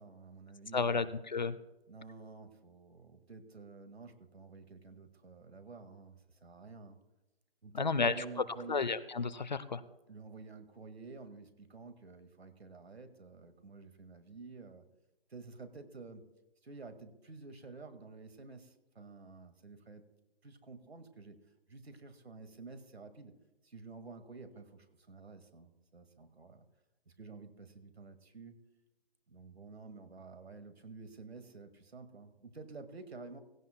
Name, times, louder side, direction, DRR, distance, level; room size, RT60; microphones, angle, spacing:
voice 1, 0.0-1.1 1.9-7.0 7.6-8.9 10.1-14.8 15.3-16.2 16.6-20.0 20.4-21.4 21.7-23.3 23.6-26.6 27.1-28.5 29.3-33.4, right 3 dB, 80° right, 9 dB, 1.9 m, -50 dB
voice 2, 0.7-1.6 7.7-8.1 8.7-9.8, left 4 dB, 45° left, 16 dB, 0.5 m, -32 dB
16.5 x 16.5 x 2.2 m, 1.0 s
hypercardioid pair, 165°, 31 cm